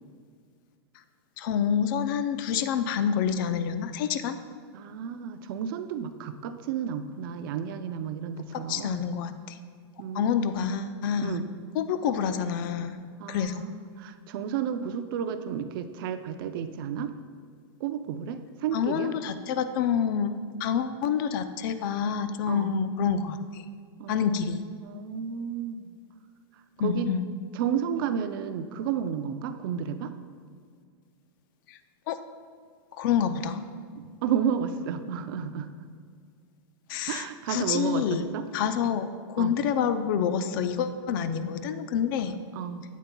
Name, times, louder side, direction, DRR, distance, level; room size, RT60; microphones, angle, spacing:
voice 1, 1.4-4.4 8.5-9.6 10.1-11.4 11.7-13.0 13.3-13.6 18.7-20.3 20.6-23.6 24.1-24.6 26.8-27.3 31.7-31.8 32.1-32.2 32.9-33.7 36.9-38.3 38.5-42.3, left 7 dB, 50° left, 10 dB, 0.5 m, -27 dB
voice 2, 4.7-9.0 10.0-10.7 11.2-11.5 13.2-17.1 17.8-19.1 22.5-22.7 24.0-24.5 24.8-26.0 26.8-27.1 27.5-30.1 33.9-35.7 37.1-38.5 39.4-39.5 42.3-42.8, right 8 dB, 55° right, 9 dB, 0.5 m, -32 dB
9.2 x 8.2 x 2.3 m, 2.1 s
supercardioid pair, 155°, 14 cm